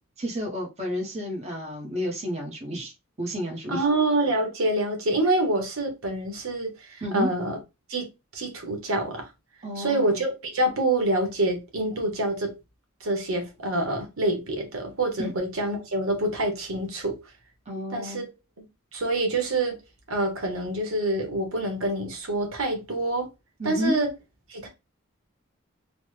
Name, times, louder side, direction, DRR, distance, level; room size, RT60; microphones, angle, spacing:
voice 1, 0.2-2.9 3.2-3.8 7.0-7.3 9.6-10.2 15.2-15.3 17.7-18.2 23.6-23.9, equal, 30° right, 0.8 m, -31 dB
voice 2, 3.7-7.6 7.9-8.1 8.3-9.2 9.8-12.6 13.0-17.2 17.9-18.3 18.6-18.7 18.9-19.8 20.1-23.3 23.6-24.1 24.5-24.7, right 2 dB, 85° right, 1.0 m, -26 dB
3.1 x 2.1 x 3.2 m
head